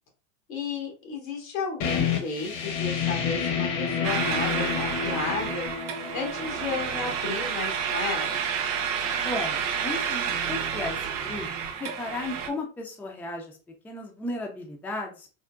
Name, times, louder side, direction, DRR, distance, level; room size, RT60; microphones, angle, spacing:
voice 1, 0.5-5.7 6.1-8.5, left 4 dB, 85° left, 2 dB, 1.2 m, -33 dB
sound 1, 1.8-7.3, left 7 dB, 60° left, 1.0 m, -29 dB
sound 2, 4.0-12.5, right 7 dB, 70° right, 0.7 m, -30 dB
voice 2, 9.2-11.5 11.8-13.6 13.8-15.3, left 2 dB, 5° left, 1 dB, 0.4 m, -35 dB
3.7 x 2.1 x 2.2 m, 0.35 s
hypercardioid pair, 95°, 40 cm